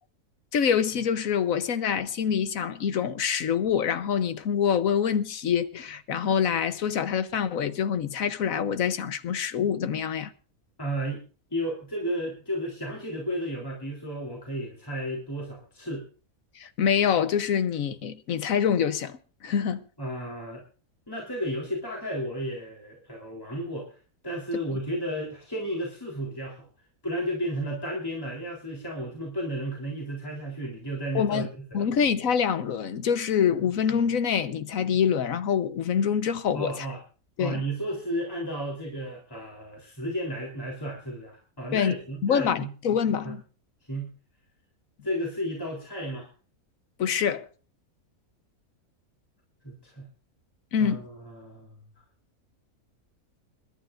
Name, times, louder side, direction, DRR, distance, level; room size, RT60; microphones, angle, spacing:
voice 1, 0.5-10.3 16.6-19.8 31.1-31.5 31.7-36.9 37.4-37.6 41.7-42.0 42.2-43.4 47.0-47.5 50.7-51.0, left 7 dB, 65° left, 1.3 m, -25 dB
voice 2, 10.8-11.2 11.5-16.0 20.0-20.6 21.1-23.9 24.2-26.7 27.0-31.8 36.5-37.0 37.4-42.7 43.2-43.3 43.9-44.1 45.0-46.3 49.6-50.1 50.8-51.7, equal, 15° left, 3.5 m, -33 dB
29.5 x 11.5 x 2.5 m
omnidirectional pair, 1.6 m